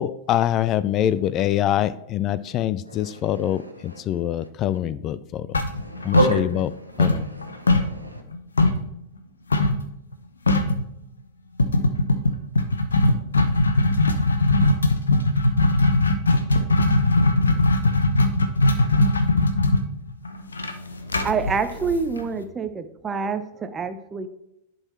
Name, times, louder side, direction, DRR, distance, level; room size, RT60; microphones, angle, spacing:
voice 1, 0.0-5.6 6.1-6.7 7.0-7.3, left 11 dB, 35° left, 17 dB, 0.3 m, -24 dB
voice 2, 2.9-4.0 5.7-6.3 6.9-8.2, right 2 dB, 90° right, 4 dB, 1.1 m, -29 dB
sound 1, 5.5-6.7 7.0-8.9 9.5-9.8 10.1-10.2 10.5-10.8 11.6-22.4, left 2 dB, 75° left, 0.7 m, -19 dB
voice 3, 21.2-24.3, right 5 dB, 20° right, 9 dB, 0.6 m, -27 dB
10.5 x 3.9 x 4.3 m, 0.81 s
figure-of-eight pair, 95°, 0 cm